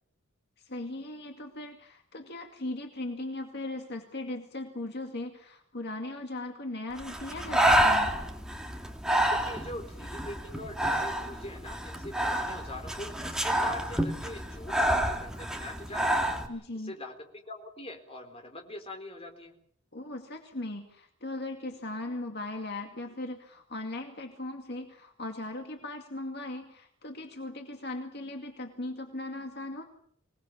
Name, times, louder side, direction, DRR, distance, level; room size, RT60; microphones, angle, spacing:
voice 1, 0.6-8.1 16.5-16.9 19.9-29.8, left 2 dB, 55° left, 3 dB, 2.3 m, -38 dB
Breathing, 7.0-16.5, right 1 dB, 5° right, 2.4 m, -28 dB
voice 2, 9.2-16.4 16.8-19.5, left 1 dB, 30° left, 4 dB, 4.0 m, -43 dB
25.5 x 19.5 x 7.3 m, 0.65 s
head